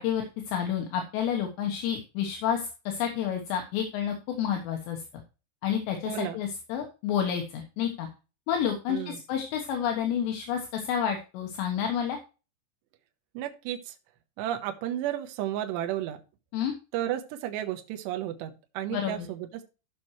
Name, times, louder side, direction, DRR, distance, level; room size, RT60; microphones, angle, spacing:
voice 1, 0.0-5.0 5.6-8.1 8.5-12.2 16.5-16.7 18.9-19.3, left 8 dB, 75° left, 3 dB, 3.3 m, -30 dB
voice 2, 6.1-6.4 8.9-9.2 13.3-14.0 14.4-16.2 16.9-19.6, right 12 dB, 75° right, 5 dB, 3.0 m, -33 dB
15.0 x 6.0 x 3.1 m, 0.32 s
omnidirectional pair, 5.2 m